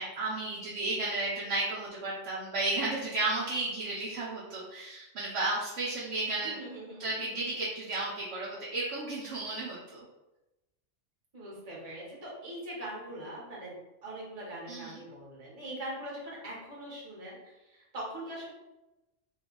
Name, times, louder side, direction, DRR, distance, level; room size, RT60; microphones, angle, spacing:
voice 1, 0.0-6.6 7.0-10.0 14.7-15.0, right 2 dB, 80° right, -6 dB, 1.0 m, -33 dB
voice 2, 6.4-7.4 11.3-18.5, right 1 dB, 35° right, -5 dB, 1.1 m, -42 dB
2.8 x 2.3 x 3.7 m, 0.99 s
omnidirectional pair, 1.3 m